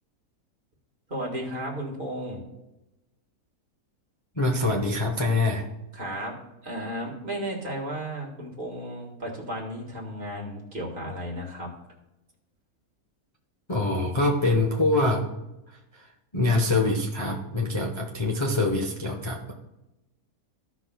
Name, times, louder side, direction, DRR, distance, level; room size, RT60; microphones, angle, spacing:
voice 1, 1.1-2.4 5.9-6.3 6.6-11.7, equal, 35° right, -2 dB, 1.9 m, -34 dB
voice 2, 4.4-5.6 13.7-15.3 16.3-19.5, left 2 dB, 25° left, -2 dB, 0.8 m, -24 dB
15.5 x 6.0 x 2.3 m, 0.97 s
omnidirectional pair, 1.6 m